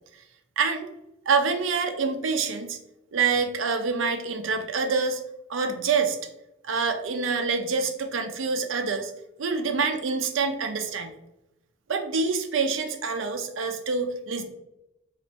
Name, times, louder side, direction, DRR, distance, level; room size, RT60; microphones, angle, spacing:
voice 1, 0.6-0.9 1.3-2.8 3.1-5.2 5.5-6.2 6.6-9.1 9.4-11.1 11.9-14.4, right 4 dB, 75° right, 7 dB, 0.5 m, -26 dB
4.0 x 2.5 x 3.4 m, 0.89 s
head